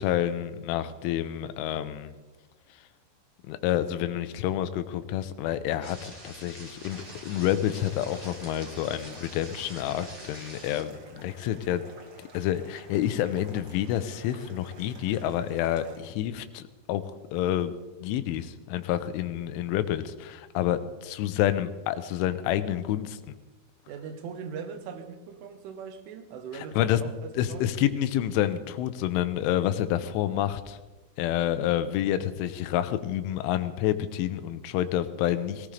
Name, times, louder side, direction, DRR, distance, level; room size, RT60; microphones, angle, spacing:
voice 1, 0.0-2.1 3.5-11.9 12.3-17.7 18.0-23.3 26.5-27.0 27.3-30.8 31.2-35.7, left 12 dB, 90° left, 11 dB, 3.2 m, -28 dB
sound 1, 5.8-10.8, right 1 dB, 20° right, 1.7 m, -45 dB
sound 2, 6.9-16.0, right 2 dB, 65° right, 1.3 m, -51 dB
voice 2, 23.9-27.6, right 6 dB, 80° right, 8 dB, 3.5 m, -40 dB
18.5 x 18.5 x 3.4 m, 1.2 s
omnidirectional pair, 5.6 m